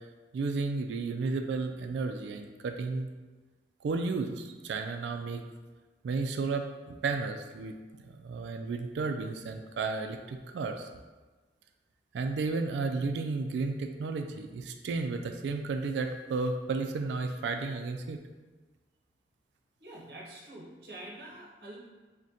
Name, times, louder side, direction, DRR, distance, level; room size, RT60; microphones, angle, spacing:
voice 1, 0.3-3.1 3.8-5.4 6.0-7.7 8.2-10.9 12.1-18.2, right 4 dB, 85° right, 6 dB, 0.3 m, -33 dB
voice 2, 19.8-21.8, right 1 dB, 65° right, -3 dB, 0.8 m, -46 dB
6.1 x 2.2 x 2.7 m, 1.3 s
head